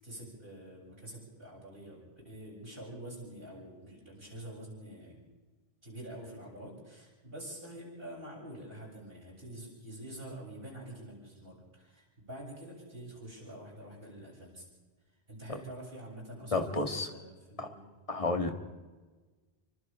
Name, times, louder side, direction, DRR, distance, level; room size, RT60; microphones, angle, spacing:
voice 1, 0.0-5.2 5.8-14.6 15.3-17.8, right 1 dB, 65° right, -4 dB, 8.1 m, -46 dB
voice 2, 16.5-17.1 17.6-17.7 18.1-18.5, left 2 dB, 35° left, 5 dB, 2.0 m, -31 dB
28.5 x 25.0 x 3.7 m, 1.3 s
omnidirectional pair, 1.0 m